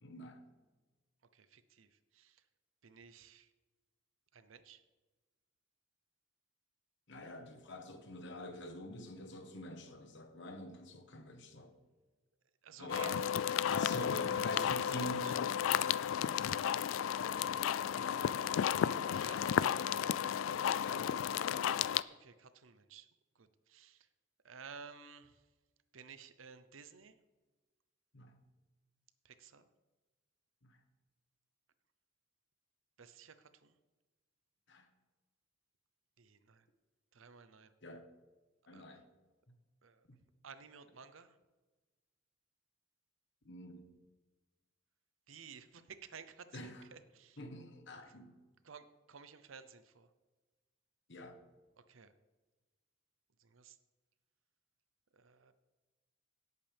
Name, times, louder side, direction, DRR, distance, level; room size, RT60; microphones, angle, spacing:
voice 1, 0.0-0.4 7.1-11.7 12.8-13.2 13.6-15.3 17.0-17.5 17.9-18.1 20.8-21.5 28.1-28.4 30.6-30.8 34.7-34.9 37.8-38.0 38.7-39.0 43.4-43.8 46.5-46.8 47.4-48.3 51.1-51.4, left 1 dB, 65° left, 7 dB, 1.3 m, -46 dB
voice 2, 1.3-2.4 2.8-3.5 4.3-4.8 12.6-13.1 13.7-15.3 19.1-19.8 22.1-23.1 23.3-24.1 24.4-25.4 25.9-27.2 29.2-29.7 33.0-33.8 36.2-36.7 37.1-37.7 38.7-39.0 39.8-40.1 40.4-41.4 45.3-47.4 48.1-48.2 48.6-50.1 51.8-52.1 53.4-53.8 55.1-55.5, right 6 dB, 90° right, 12 dB, 0.7 m, -55 dB
sound 1, 12.9-22.0, left 9 dB, 85° left, 0.3 m, -33 dB
17.5 x 8.3 x 3.5 m, 1.2 s
head